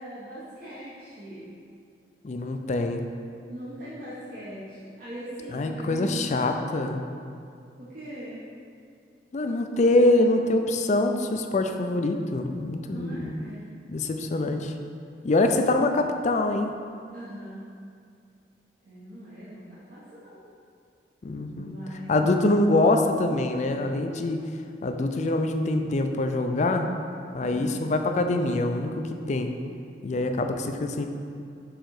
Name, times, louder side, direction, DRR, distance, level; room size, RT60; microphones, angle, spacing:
voice 1, 0.0-1.5 3.5-6.6 7.8-8.4 12.8-13.6 17.1-17.6 18.8-20.4 21.6-22.4 27.4-27.8, equal, 55° right, -11 dB, 1.2 m, -40 dB
voice 2, 2.2-3.0 5.5-7.0 9.3-13.4 13.9-14.7 15.2-16.7 21.2-21.7 22.1-24.5 24.8-26.9 27.3-29.5 30.0-31.1, left 2 dB, 40° left, 5 dB, 0.4 m, -24 dB
6.3 x 3.9 x 4.8 m, 2.3 s
head